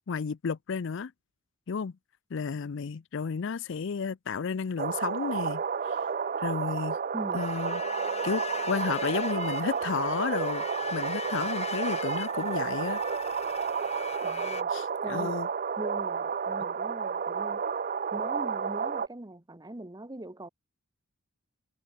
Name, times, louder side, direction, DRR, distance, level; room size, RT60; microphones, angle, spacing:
voice 1, 0.1-1.1 1.7-1.9 2.3-6.0 6.4-7.0 7.3-7.8 8.2-10.6 10.9-13.0 14.7-15.5, left 5 dB, 60° left, 0.5 m, -32 dB
sound 1, 4.8-19.1, right 6 dB, 40° right, 0.5 m, -31 dB
sound 2, 7.4-14.6, left 5 dB, 30° left, 2.7 m, -39 dB
voice 2, 14.2-14.7 15.0-15.4 15.8-17.6 18.1-20.5, right 1 dB, 20° right, 1.0 m, -41 dB
head